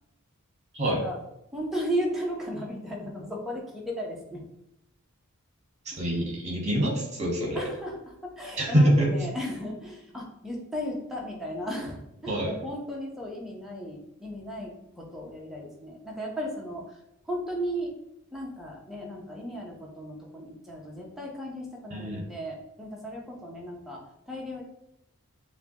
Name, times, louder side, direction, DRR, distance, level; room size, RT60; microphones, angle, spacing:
voice 1, 0.8-1.2 1.5-4.4 5.9-6.0 7.5-18.0 18.3-24.6, equal, ahead, -3 dB, 0.8 m, -35 dB
voice 2, 5.8-7.6 8.6-9.1 12.3-12.5 21.9-22.3, equal, 35° right, -2 dB, 1.3 m, -25 dB
6.4 x 2.3 x 2.9 m, 0.83 s
head